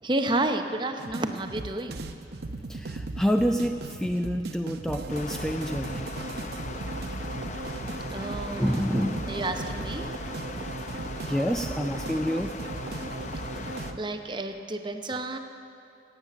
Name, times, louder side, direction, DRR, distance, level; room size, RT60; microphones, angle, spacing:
voice 1, 0.0-2.0 8.1-10.1 14.0-15.4, right 2 dB, 25° right, 6 dB, 0.7 m, -30 dB
sound 1, 1.0-14.0, right 2 dB, 60° right, 0.7 m, -36 dB
voice 2, 2.7-6.0 8.6-9.1 11.3-12.5, equal, 5° left, 5 dB, 0.3 m, -27 dB
Stream, 5.1-13.9, left 3 dB, 40° left, 0.7 m, -40 dB
18.0 x 8.2 x 6.7 m, 2.6 s
head